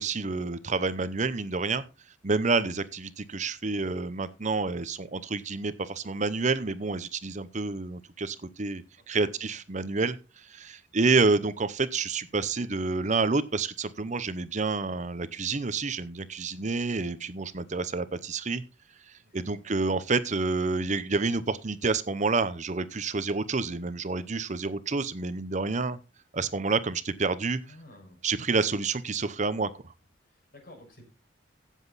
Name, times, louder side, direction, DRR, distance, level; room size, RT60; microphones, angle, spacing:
voice 1, 0.0-1.8 2.2-18.6 19.3-26.0 26.3-27.6 28.2-29.7, right 3 dB, 40° right, 14 dB, 0.7 m, -28 dB
voice 2, 9.0-9.5 19.2-19.6 27.6-28.2 30.2-31.0, left 1 dB, 50° left, 3 dB, 5.5 m, -53 dB
16.0 x 7.4 x 4.0 m, 0.29 s
head